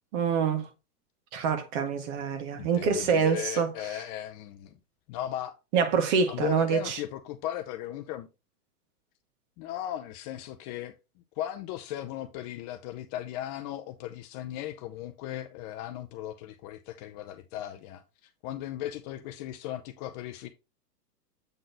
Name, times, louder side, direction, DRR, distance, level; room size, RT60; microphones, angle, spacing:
voice 1, 0.1-0.7 1.3-3.7 5.7-7.0, right 6 dB, 50° right, 1.7 m, -26 dB
voice 2, 2.5-4.8 5.1-5.6 6.3-8.3 9.6-11.0 11.4-20.5, left 12 dB, 25° left, 0.5 m, -37 dB
8.0 x 3.8 x 3.9 m
hypercardioid pair, 115°, 47 cm